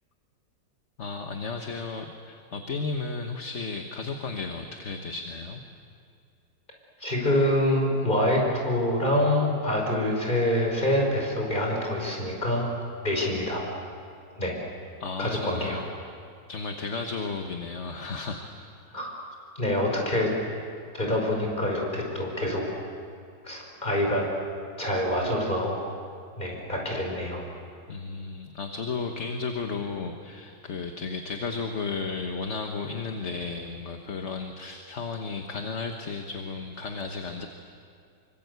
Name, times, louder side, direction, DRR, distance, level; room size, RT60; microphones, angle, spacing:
voice 1, 1.0-5.6 15.0-15.8 16.5-18.5 18.9-19.1 27.9-37.5, left 4 dB, 45° left, 4 dB, 1.5 m, -34 dB
voice 2, 7.0-12.7 13.0-13.6 14.4-14.5 15.2-15.8 18.9-19.1 19.6-20.3 20.9-22.6 23.4-24.3 24.8-25.8 26.4-27.4, left 1 dB, 25° left, 0 dB, 5.5 m, -26 dB
26.0 x 24.5 x 8.2 m, 2.4 s
omnidirectional pair, 1.9 m